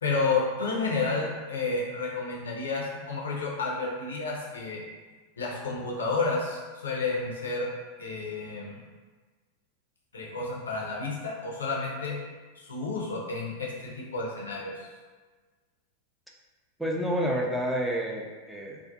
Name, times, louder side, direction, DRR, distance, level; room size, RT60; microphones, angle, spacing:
voice 1, 0.0-4.8 5.4-7.7 8.0-8.8 10.1-12.2 12.6-14.9, left 3 dB, 70° left, -3 dB, 0.6 m, -31 dB
voice 2, 16.8-18.8, equal, ahead, -3 dB, 0.4 m, -29 dB
2.4 x 2.4 x 2.5 m, 1.4 s
figure-of-eight pair, 90°, 0 cm